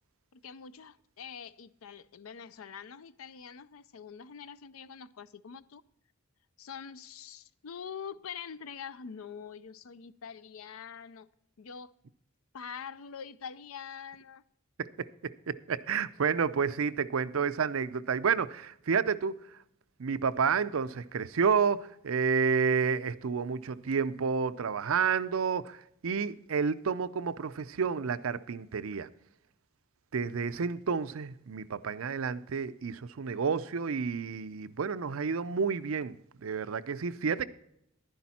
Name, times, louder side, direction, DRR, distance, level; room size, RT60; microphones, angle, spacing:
voice 1, 0.3-5.8 6.6-11.3 11.6-11.9 12.5-14.4, left 7 dB, 90° left, 0.5 m, -44 dB
voice 2, 14.8-19.3 20.0-29.1 30.1-36.1 36.4-37.5, right 6 dB, 80° right, 0.5 m, -30 dB
11.0 x 10.5 x 4.2 m
head